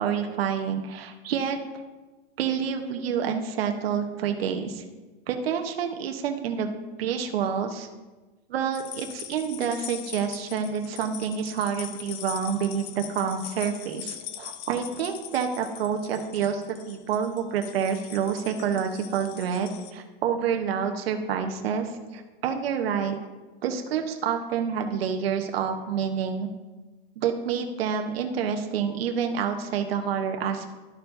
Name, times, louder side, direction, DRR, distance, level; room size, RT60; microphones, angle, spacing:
voice 1, 0.0-1.6 2.4-4.8 5.3-6.7 7.0-7.9 8.5-23.1 23.6-26.5 27.2-30.6, right 7 dB, 85° right, 4 dB, 0.9 m, -28 dB
sound 1, 8.7-19.9, left 11 dB, 45° left, 0.5 m, -41 dB
13.0 x 4.6 x 2.6 m, 1.2 s
supercardioid pair, 135°, 29 cm